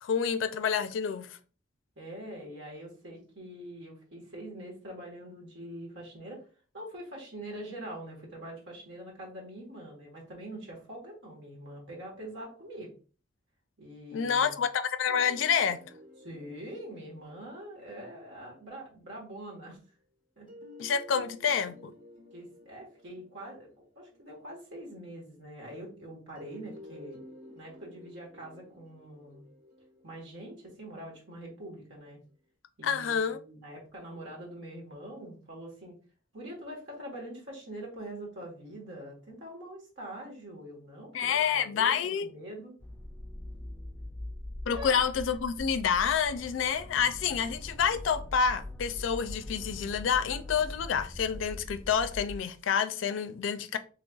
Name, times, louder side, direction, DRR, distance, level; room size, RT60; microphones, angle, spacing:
voice 1, 0.0-1.4 14.1-15.8 20.8-21.9 32.8-33.4 41.1-42.3 44.7-53.8, left 7 dB, 80° left, 0.4 m, -28 dB
voice 2, 2.0-6.5 6.7-12.9 13.8-14.5 16.2-19.8 20.4-20.5 22.3-23.7 23.9-27.2 27.5-29.4 30.0-32.2 32.8-36.0 36.3-42.7 44.7-45.1, right 1 dB, 70° right, 1.3 m, -44 dB
sound 1, 15.1-18.9 20.5-24.9 26.4-31.5, left 1 dB, 45° right, 1.3 m, -52 dB
sound 2, 42.8-52.4, left 1 dB, 10° left, 0.4 m, -42 dB
3.9 x 3.2 x 2.3 m
head